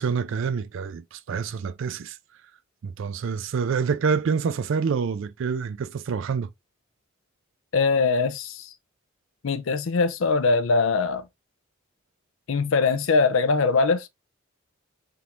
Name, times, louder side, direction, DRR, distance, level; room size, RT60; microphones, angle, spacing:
voice 1, 0.0-2.2 2.8-6.5, right 6 dB, 65° right, 0.4 m, -27 dB
voice 2, 7.7-8.7 9.4-11.2 12.5-14.1, left 4 dB, 65° left, 0.5 m, -22 dB
3.5 x 2.5 x 2.9 m
head